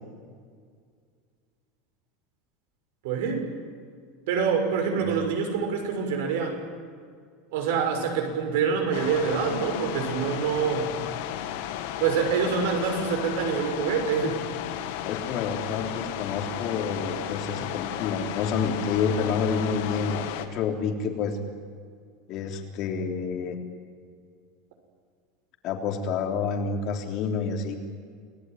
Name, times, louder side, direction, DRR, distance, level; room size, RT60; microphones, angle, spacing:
voice 1, 3.0-3.4 4.3-6.6 7.5-10.9 12.0-14.4, right 6 dB, 70° right, 4 dB, 6.5 m, -26 dB
sound 1, 8.9-20.5, left 11 dB, 65° left, 2.3 m, -34 dB
voice 2, 15.0-21.4 22.3-23.6 25.6-27.8, left 5 dB, 40° left, 3 dB, 3.4 m, -29 dB
29.0 x 19.5 x 9.4 m, 2.1 s
supercardioid pair, 180°, 0 cm